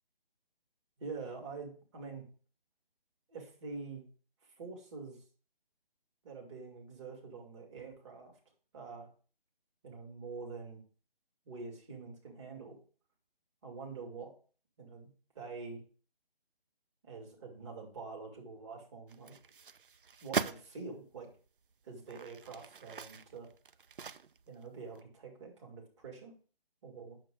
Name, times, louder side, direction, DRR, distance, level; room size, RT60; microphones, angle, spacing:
voice 1, 1.0-2.2 3.3-4.0 4.6-5.2 6.2-8.3 8.7-9.1 9.8-10.8 11.5-12.8 13.6-14.3 14.8-15.1 15.3-15.8 17.0-19.3 20.2-21.3 21.8-23.5 24.5-26.3 26.8-27.2, right 4 dB, 30° right, 0 dB, 2.5 m, -46 dB
sound 1, 19.1-20.6 21.3-21.4 22.0-24.6 25.0-25.1, right 6 dB, 60° right, 0.5 m, -40 dB
8.9 x 6.8 x 3.8 m, 0.39 s
figure-of-eight pair, 155°, 30 cm